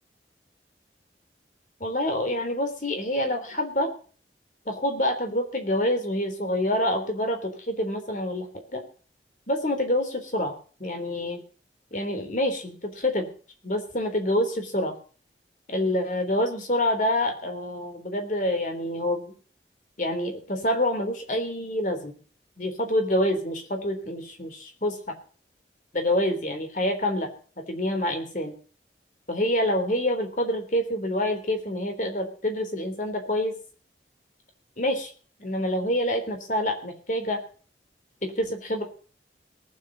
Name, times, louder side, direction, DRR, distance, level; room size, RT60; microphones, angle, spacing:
voice 1, 1.8-3.9 4.7-8.5 8.7-8.8 9.5-10.5 10.8-11.4 11.9-13.3 13.6-15.0 15.7-19.2 20.0-22.2 22.6-25.1 25.9-27.3 27.7-28.5 29.3-33.5 34.8-35.1 35.4-37.4 38.2-38.8, left 1 dB, 45° left, 6 dB, 3.6 m, -27 dB
18.5 x 8.0 x 6.9 m, 0.41 s
head